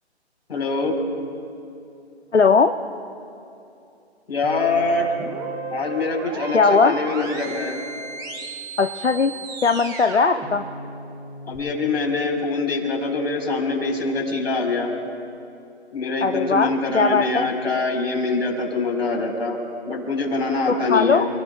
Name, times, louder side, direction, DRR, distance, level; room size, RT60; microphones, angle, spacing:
voice 1, 0.5-0.9 4.3-5.1 5.7-7.8 11.4-14.9 15.9-19.6 19.9-21.3, left 3 dB, 65° left, 2 dB, 4.5 m, -24 dB
voice 2, 2.3-2.7 6.5-6.9 8.8-10.6 16.2-16.7 16.9-17.5 20.7-21.3, left 4 dB, 85° left, 6 dB, 0.9 m, -19 dB
sound 1, 4.4-11.6, right 3 dB, 10° right, 1.1 m, -35 dB
29.0 x 18.0 x 2.4 m, 2.7 s
figure-of-eight pair, 140°, 34 cm